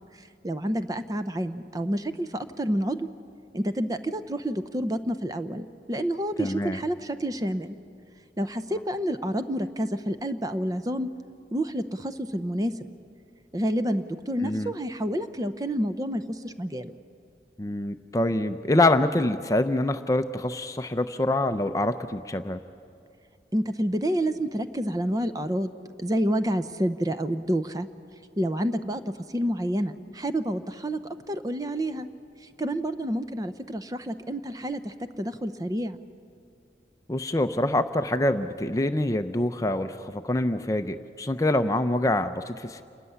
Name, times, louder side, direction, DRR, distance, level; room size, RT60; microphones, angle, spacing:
voice 1, 0.4-3.1 3.5-7.8 8.4-11.1 11.5-12.7 13.5-16.9 23.5-25.7 26.0-27.9 28.4-29.0 29.3-31.0 31.3-32.1 32.6-36.0, equal, 20° right, 10 dB, 0.7 m, -28 dB
voice 2, 6.4-6.8 14.4-14.7 17.6-22.6 37.1-42.8, left 1 dB, 20° left, 8 dB, 0.5 m, -25 dB
28.0 x 13.5 x 9.8 m, 2.4 s
head